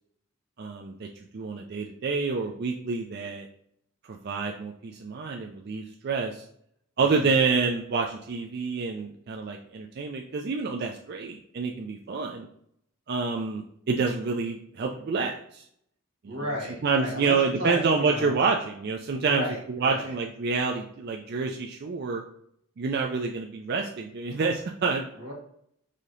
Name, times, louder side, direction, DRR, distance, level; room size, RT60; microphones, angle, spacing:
voice 1, 0.6-1.1 1.3-3.5 4.1-6.4 7.0-12.5 13.1-15.6 16.2-16.3 16.8-19.4 19.8-22.2 22.8-25.0, right 4 dB, 45° right, 1 dB, 0.4 m, -28 dB
voice 2, 7.0-7.3 16.2-18.6 19.2-20.2 25.1-25.3, equal, 85° right, -1 dB, 1.7 m, -34 dB
4.9 x 2.8 x 3.8 m, 0.69 s
head